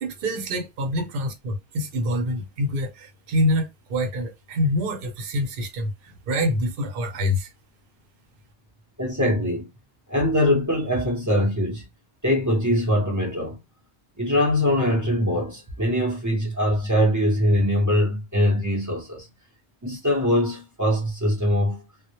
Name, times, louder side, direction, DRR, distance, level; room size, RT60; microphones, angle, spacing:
voice 1, 0.0-7.5, left 1 dB, 55° right, 0.7 m, -26 dB
voice 2, 9.0-9.7 10.1-11.8 12.2-13.6 14.2-19.3 19.8-21.8, equal, 25° right, 0.4 m, -22 dB
2.1 x 2.1 x 2.9 m
omnidirectional pair, 1.3 m